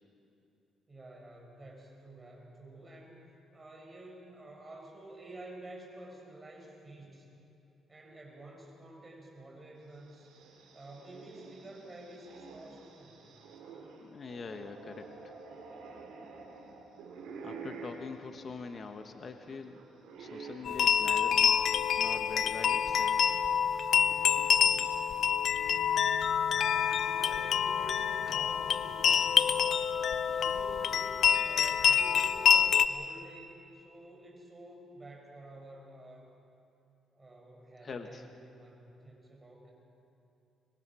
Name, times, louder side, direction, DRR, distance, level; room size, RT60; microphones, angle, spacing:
voice 1, 0.9-7.3 7.9-10.3 10.7-13.2 26.3-29.4 29.8-29.9 30.3-36.3 37.1-39.7, right 1 dB, 25° right, 0 dB, 6.5 m, -50 dB
sound 1, 9.9-22.2 22.6-22.7 23.7-25.0, right 4 dB, 90° right, 3.6 m, -50 dB
voice 2, 14.0-15.1 17.4-19.8 20.2-21.6 22.0-23.4 37.8-38.2, left 4 dB, 45° left, 6 dB, 1.2 m, -44 dB
sound 2, 20.7-32.9, left 8 dB, 65° left, 0.6 m, -27 dB
25.0 x 21.5 x 6.3 m, 2.8 s
cardioid pair, 90°, 0 cm